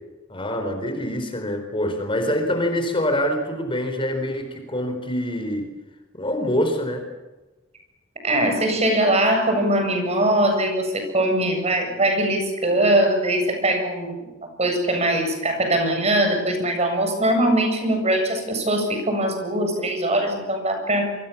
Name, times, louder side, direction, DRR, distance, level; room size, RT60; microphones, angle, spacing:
voice 1, 0.3-5.7 6.1-7.1, left 1 dB, 25° left, 5 dB, 4.3 m, -25 dB
voice 2, 8.2-14.3 14.6-21.2, right 1 dB, 35° right, 5 dB, 7.8 m, -21 dB
28.5 x 25.0 x 7.3 m, 1.1 s
head